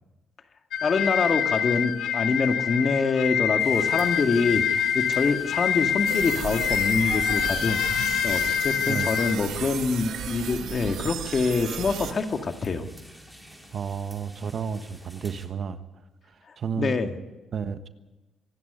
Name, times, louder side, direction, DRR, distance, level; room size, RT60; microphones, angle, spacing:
sound 1, 0.7-9.4, left 8 dB, 80° left, 1.9 m, -26 dB
voice 1, 0.8-12.8 16.8-17.2, left 4 dB, 45° left, 6 dB, 2.0 m, -25 dB
sound 2, 3.6-15.5, equal, ahead, 4.5 m, -49 dB
sound 3, 6.0-12.1, right 9 dB, 80° right, 1.3 m, -35 dB
voice 2, 8.8-9.2 13.7-15.8 16.6-16.9 17.5-17.9, right 6 dB, 55° right, 10 dB, 1.3 m, -31 dB
25.5 x 11.0 x 9.6 m, 1.1 s
cardioid pair, 90°, 0 cm